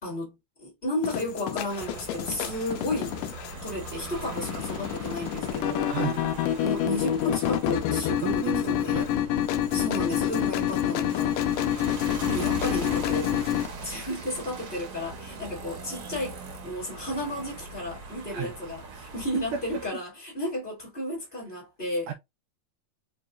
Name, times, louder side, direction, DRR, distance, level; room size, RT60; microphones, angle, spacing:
voice 1, 0.0-3.1 3.6-5.9 6.6-9.1 9.7-11.4 12.2-13.3 13.8-22.1, left 1 dB, 20° left, 1.5 m, -33 dB
sound 1, 1.0-13.7, left 11 dB, 80° left, 2.0 m, -28 dB
sound 2, 1.7-19.9, right 3 dB, 65° right, 1.6 m, -41 dB
voice 2, 5.9-6.3 8.2-9.1 18.3-18.5 18.9-19.6 22.1-22.2, right 9 dB, 80° right, 1.9 m, -34 dB
5.3 x 2.9 x 2.4 m
omnidirectional pair, 4.1 m